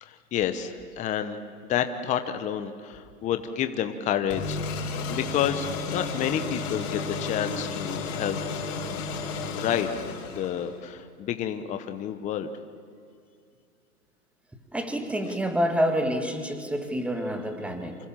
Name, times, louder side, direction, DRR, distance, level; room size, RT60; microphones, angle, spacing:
voice 1, 0.0-1.4 1.7-4.6 5.1-8.4 9.5-9.9 10.3-12.5, left 10 dB, 15° left, 8 dB, 1.0 m, -29 dB
sound 1, 4.3-10.8, left 4 dB, 40° left, 5.8 m, -33 dB
voice 2, 14.7-18.0, equal, 5° right, 6 dB, 2.2 m, -27 dB
28.0 x 26.0 x 7.5 m, 2.4 s
hypercardioid pair, 130°, 46 cm